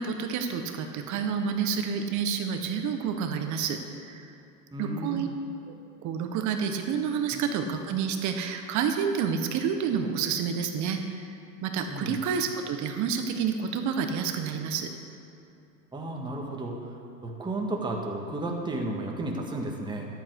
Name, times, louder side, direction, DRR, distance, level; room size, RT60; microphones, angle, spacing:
voice 1, 0.0-3.8 4.1-4.2 4.8-5.3 5.7-5.8 6.0-14.9, right 6 dB, 35° right, 5 dB, 1.4 m, -29 dB
voice 2, 4.7-5.2 7.3-7.4 11.9-12.2 15.9-16.9 17.2-20.1, right 2 dB, 10° right, 0 dB, 1.8 m, -33 dB
13.5 x 11.0 x 4.8 m, 2.8 s
hypercardioid pair, 110°, 48 cm